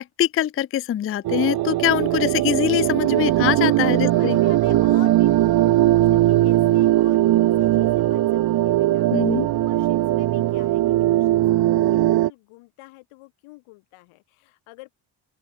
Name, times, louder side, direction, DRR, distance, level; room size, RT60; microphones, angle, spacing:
voice 1, 0.0-4.4 9.1-9.5, left 11 dB, 30° left, 0.4 m, -23 dB
sound 1, 1.2-12.3, right 15 dB, 50° right, 0.6 m, -19 dB
voice 2, 4.0-9.1 9.5-15.0, left 22 dB, 85° left, 2.6 m, -46 dB
open air
supercardioid pair, 70°, 48 cm